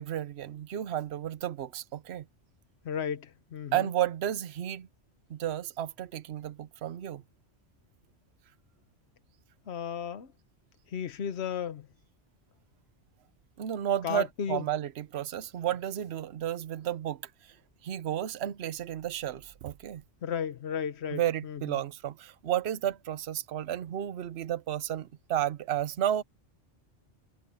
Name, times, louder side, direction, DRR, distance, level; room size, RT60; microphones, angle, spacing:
voice 1, 0.0-2.2 3.7-4.9 5.3-7.2 13.6-17.2 17.8-20.0 21.1-26.2, right 11 dB, 65° right, 1.0 m, -32 dB
voice 2, 2.8-3.9 9.7-10.3 10.9-11.9 14.0-14.7 20.2-21.8, left 8 dB, 60° left, 1.3 m, -34 dB
omnidirectional pair, 1.2 m